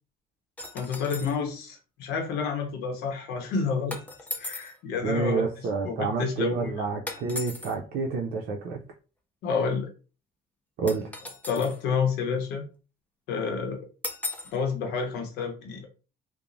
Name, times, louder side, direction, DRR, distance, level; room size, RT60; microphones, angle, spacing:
sound 1, 0.6-1.4 3.9-4.8 7.1-7.7 10.9-11.8 14.0-14.6, left 2 dB, 10° left, 0.4 m, -37 dB
voice 1, 0.7-4.0 4.3-5.5 5.8-6.8 9.4-9.9 11.5-12.6 13.3-13.8 14.5-15.9, left 5 dB, 85° left, 2 dB, 0.7 m, -29 dB
voice 2, 5.0-8.8 10.8-11.1, right 4 dB, 70° right, 1 dB, 0.5 m, -29 dB
3.0 x 2.0 x 2.5 m, 0.34 s
cardioid pair, 110°, 17 cm